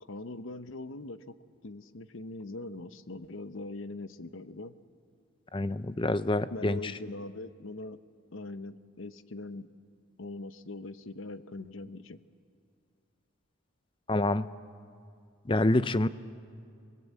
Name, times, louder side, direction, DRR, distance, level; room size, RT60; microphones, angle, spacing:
voice 1, 0.1-1.4 1.6-4.7 6.5-8.0 8.3-9.7 10.2-12.2, left 2 dB, 70° left, 12 dB, 0.9 m, -41 dB
voice 2, 5.5-6.9 14.1-14.5 15.5-16.1, left 2 dB, 25° left, 14 dB, 0.5 m, -27 dB
29.5 x 19.5 x 8.4 m, 2.4 s
head